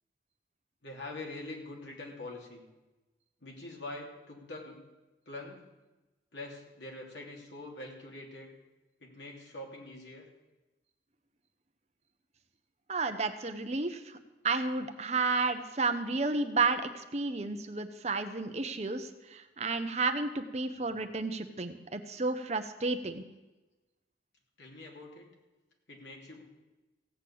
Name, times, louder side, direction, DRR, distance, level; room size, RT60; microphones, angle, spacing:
voice 1, 0.8-2.7 3.4-4.8 5.2-5.7 6.3-8.5 9.0-10.2 24.6-25.3 25.9-26.4, left 2 dB, 85° left, 0 dB, 3.0 m, -44 dB
voice 2, 12.9-14.2 14.4-23.2, right 3 dB, 35° right, 8 dB, 0.9 m, -32 dB
16.0 x 6.7 x 8.6 m, 1.1 s
head